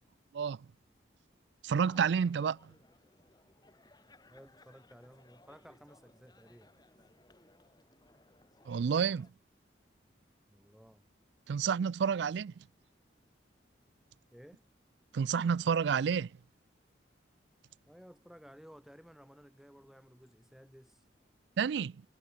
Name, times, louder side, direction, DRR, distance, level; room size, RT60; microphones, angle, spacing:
voice 1, 0.3-0.7 1.6-2.7 8.7-9.3 11.5-12.5 15.1-16.3 21.6-22.0, right 6 dB, 65° right, 0.3 m, -30 dB
sound 1, 1.8-9.3, left 2 dB, 20° left, 2.5 m, -62 dB
voice 2, 4.3-6.7 10.5-11.1 14.3-14.6 17.9-21.0, equal, ahead, 1.5 m, -56 dB
head